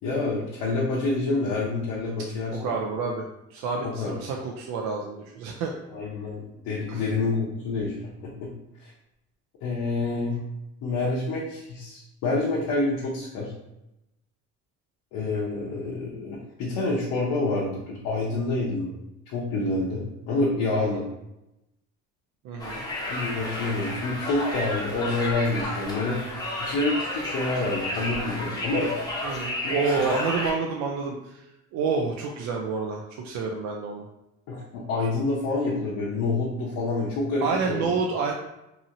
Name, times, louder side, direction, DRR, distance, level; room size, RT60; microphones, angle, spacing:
voice 1, 0.0-2.6 3.8-4.1 5.9-8.5 8.8-8.9 9.6-10.4 10.8-13.5 15.1-18.9 19.3-21.0 23.1-26.2 26.6-28.9 29.6-29.7 30.1-30.2 34.5-37.9, left 2 dB, 80° left, -6 dB, 0.7 m, -27 dB
voice 2, 2.5-3.3 3.5-5.7 6.9-7.0 20.8-21.0 22.4-22.8 29.2-31.5 31.7-34.1 37.4-38.3, right 4 dB, 70° right, 1 dB, 0.5 m, -28 dB
Conversation, 22.6-30.5, left 1 dB, 15° left, 0.6 m, -32 dB
2.9 x 2.7 x 2.5 m, 0.89 s
cardioid pair, 125°, 30 cm